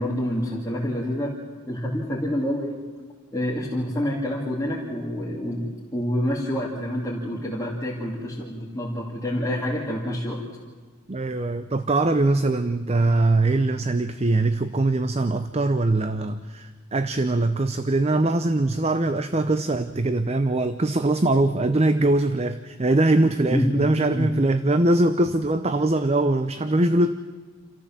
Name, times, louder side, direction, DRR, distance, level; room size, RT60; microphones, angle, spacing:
voice 1, 0.0-1.3 1.7-2.8 3.3-10.4 23.5-24.4, equal, 15° left, -6 dB, 2.6 m, -27 dB
voice 2, 11.1-27.1, right 2 dB, 30° right, 11 dB, 0.6 m, -22 dB
29.0 x 13.5 x 7.4 m, 1.4 s
head